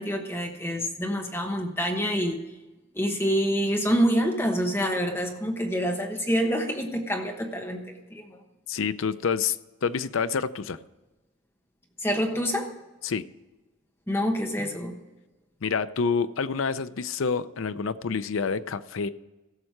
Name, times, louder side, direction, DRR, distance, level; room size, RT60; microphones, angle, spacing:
voice 1, 0.0-2.4 2.9-8.4 12.0-12.7 14.1-15.0, equal, 10° left, 2 dB, 1.1 m, -27 dB
voice 2, 8.7-10.8 13.0-13.2 15.6-19.1, left 5 dB, 85° left, 13 dB, 0.5 m, -28 dB
16.0 x 6.5 x 4.6 m, 1.1 s
head